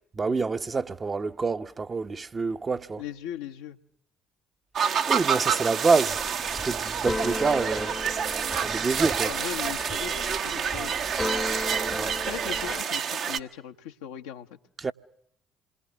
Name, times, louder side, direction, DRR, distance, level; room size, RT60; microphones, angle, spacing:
voice 1, 0.2-3.0 5.1-6.2 6.6-7.9 8.6-9.3 12.0-12.1 14.8-14.9, right 4 dB, 30° right, 1.0 m, -27 dB
voice 2, 3.0-3.8 9.2-10.9 12.2-14.6, left 9 dB, 70° left, 1.1 m, -38 dB
sound 1, 4.8-13.4, right 7 dB, 55° right, 1.2 m, -28 dB
Camera, 5.4-6.4 7.4-8.2 9.5-10.3 11.5-12.2, right 6 dB, 90° right, 7.5 m, -52 dB
Keyboard (musical), 6.1-12.8, left 2 dB, 15° left, 1.0 m, -36 dB
27.5 x 22.0 x 7.2 m
figure-of-eight pair, 50°, 0 cm